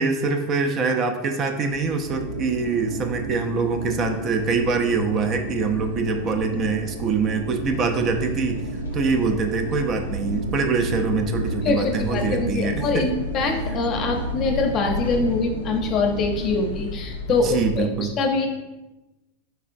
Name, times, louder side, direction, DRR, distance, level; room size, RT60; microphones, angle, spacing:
voice 1, 0.0-8.6 8.9-13.1 17.3-18.1, right 4 dB, 35° right, 5 dB, 0.4 m, -24 dB
sound 1, 1.7-17.7, left 1 dB, 90° left, 0.4 m, -33 dB
sound 2, 2.0-16.7, right 2 dB, 75° right, 0.8 m, -34 dB
voice 2, 11.6-18.5, left 3 dB, 40° left, 2 dB, 0.6 m, -24 dB
3.6 x 3.2 x 2.5 m, 1.1 s
hypercardioid pair, 110°, 0 cm